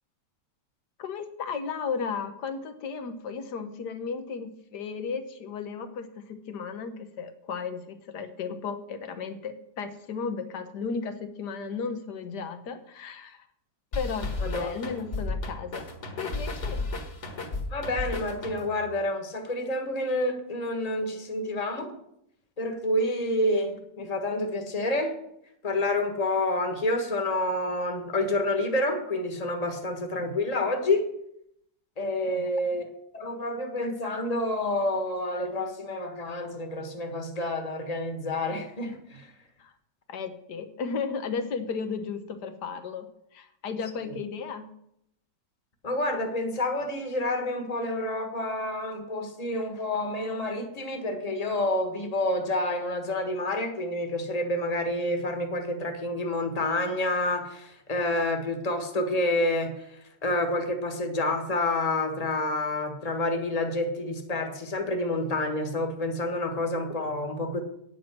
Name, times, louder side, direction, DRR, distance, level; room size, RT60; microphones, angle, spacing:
voice 1, 1.0-13.5 13.9-15.9 16.2-16.9 32.3-32.5 39.6-39.7 40.1-44.7, left 5 dB, 70° left, 9 dB, 1.6 m, -35 dB
sound 1, 13.9-18.9, left 3 dB, 45° left, 1.7 m, -33 dB
voice 2, 17.7-21.9 22.6-25.2 25.6-31.1 32.0-32.8 33.1-39.3 45.8-59.9 60.2-67.6, left 1 dB, 25° left, 5 dB, 1.4 m, -28 dB
9.0 x 8.9 x 6.0 m, 0.76 s
omnidirectional pair, 1.8 m